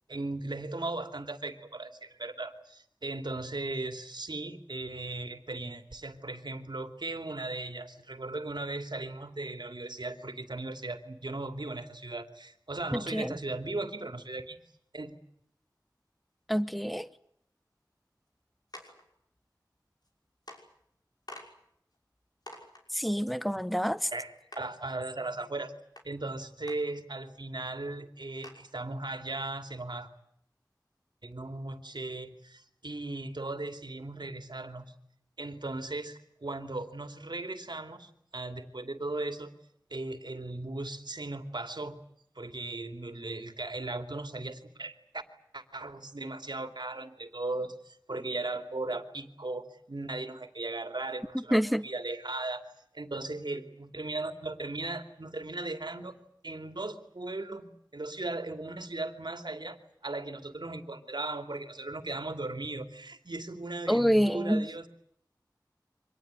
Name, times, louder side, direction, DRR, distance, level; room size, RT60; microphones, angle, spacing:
voice 1, 0.1-14.6 14.9-15.1 24.1-25.7 26.0-30.1 31.2-34.9 35.4-39.5 39.9-42.0 42.4-45.2 45.5-52.6 52.9-56.2 56.4-59.8 60.0-64.9, right 2 dB, 75° right, 2.7 m, -37 dB
voice 2, 12.9-13.3 16.5-17.1 22.9-24.1 51.3-51.8 63.9-64.7, equal, ahead, 1.0 m, -27 dB
sound 1, 18.7-19.0 20.0-20.1 20.5-20.6 21.3-21.5 21.9-22.0 22.5-22.8 24.1-24.2 24.5-24.6 26.0-26.1 26.7-26.8 27.4-27.5 27.7-27.8 28.4-28.7, left 1 dB, 60° left, 6.0 m, -46 dB
25.0 x 19.5 x 9.7 m
wide cardioid pair, 50°, 8 cm